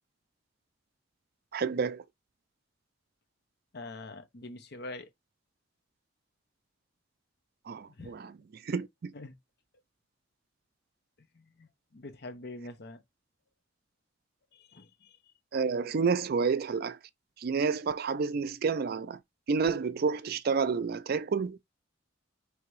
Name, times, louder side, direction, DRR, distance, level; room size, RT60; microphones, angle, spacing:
voice 1, 1.5-2.0 7.7-8.3 8.6-9.1 15.5-17.0 17.4-19.2 19.5-21.6, right 5 dB, 55° right, 0.4 m, -29 dB
voice 2, 3.7-5.1 7.9-8.2 9.1-9.4 11.3-13.0 14.5-15.3, left 2 dB, 60° left, 0.9 m, -45 dB
3.4 x 2.9 x 4.7 m
head